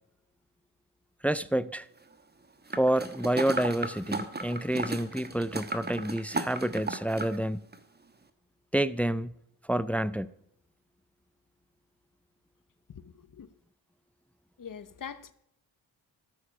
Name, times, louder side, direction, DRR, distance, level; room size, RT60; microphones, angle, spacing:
voice 1, 1.2-1.9 2.7-7.6 8.7-9.3 9.7-10.3, right 1 dB, 5° left, 0.3 m, -28 dB
sound 1, 2.7-7.4 7.7-7.8, right 3 dB, 20° right, 1.1 m, -35 dB
voice 2, 12.9-13.5 14.6-15.3, left 7 dB, 40° left, 0.9 m, -43 dB
13.5 x 6.9 x 5.9 m
cardioid pair, 80°, 48 cm